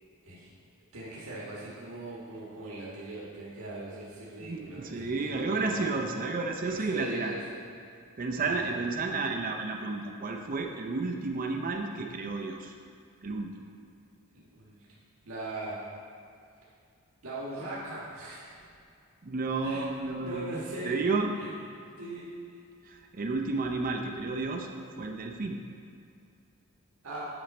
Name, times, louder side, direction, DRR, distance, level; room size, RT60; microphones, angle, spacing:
voice 1, 0.9-5.9 6.6-7.6 8.5-8.6 14.3-14.8 15.2-15.8 17.2-18.5 19.6-19.8 20.1-20.9 21.4-21.6 22.0-22.6 27.0-27.3, right 2 dB, 80° right, -7 dB, 1.4 m, -40 dB
voice 2, 4.4-7.3 8.2-12.7 13.2-13.5 19.2-20.5 20.8-21.3 22.8-24.7 25.0-25.6, right 3 dB, 40° right, 2 dB, 0.5 m, -31 dB
8.9 x 6.3 x 4.2 m, 2.4 s
head